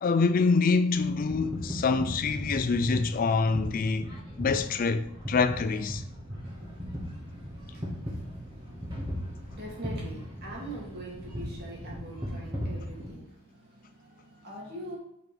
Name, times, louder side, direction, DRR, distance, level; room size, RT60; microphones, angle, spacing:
voice 1, 0.0-4.1 4.4-6.0, left 4 dB, 40° left, 0.3 m, -26 dB
sound 1, 0.9-13.1, equal, 20° right, 2.1 m, -37 dB
voice 2, 6.1-15.0, right 1 dB, 45° right, 2.5 m, -45 dB
5.9 x 5.7 x 5.2 m
head